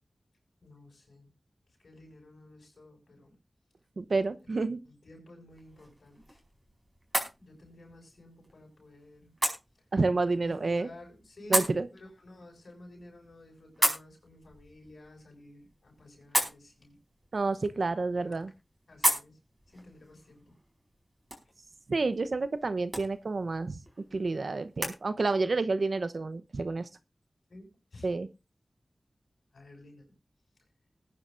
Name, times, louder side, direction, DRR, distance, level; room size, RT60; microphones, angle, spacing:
voice 1, 0.6-1.3 1.8-3.3 4.8-6.4 7.4-9.3 10.4-17.0 18.1-18.4 18.9-19.4 19.7-20.6 27.5-28.1 29.5-30.1, left 1 dB, 80° left, 2 dB, 6.5 m, -52 dB
voice 2, 4.0-4.8 9.9-10.9 11.5-11.9 17.3-18.5 21.9-23.8 24.1-26.9 28.0-28.3, right 3 dB, 70° right, 13 dB, 0.8 m, -29 dB
Kisses Male, 5.5-25.0, right 1 dB, 25° right, 4.7 m, -37 dB
20.5 x 9.9 x 2.6 m, 0.27 s
cardioid pair, 40°, 0 cm